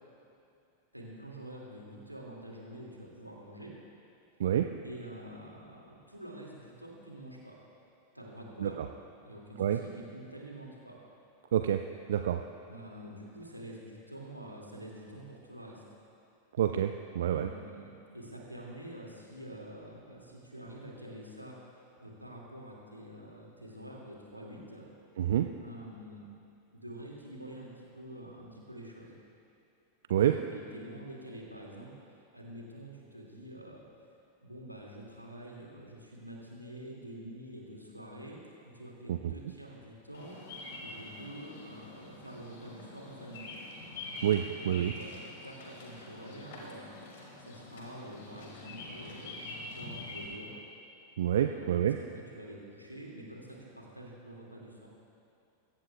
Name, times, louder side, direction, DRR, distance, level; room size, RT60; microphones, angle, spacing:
voice 1, 0.9-3.7 4.8-7.6 8.1-8.8 9.2-11.0 12.7-15.8 17.3-17.9 18.1-21.6 22.0-24.9 25.6-26.2 26.7-29.1 30.3-31.9 32.3-33.8 34.4-38.4 38.6-40.4 40.8-43.6 44.5-45.1 45.4-46.9 47.4-50.5 51.4-51.9 52.1-54.9, right 1 dB, 90° right, -2 dB, 2.3 m, -47 dB
voice 2, 11.5-11.8 12.1-12.4 16.6-17.5 25.2-25.5 30.1-30.4 39.1-39.3 44.2-44.9 51.2-52.0, right 10 dB, 60° right, 7 dB, 0.5 m, -28 dB
Bird vocalization bird call bird song, 40.1-50.3, left 2 dB, 55° left, 2.7 m, -45 dB
21.5 x 16.5 x 2.4 m, 2.5 s
figure-of-eight pair, 90°, 0 cm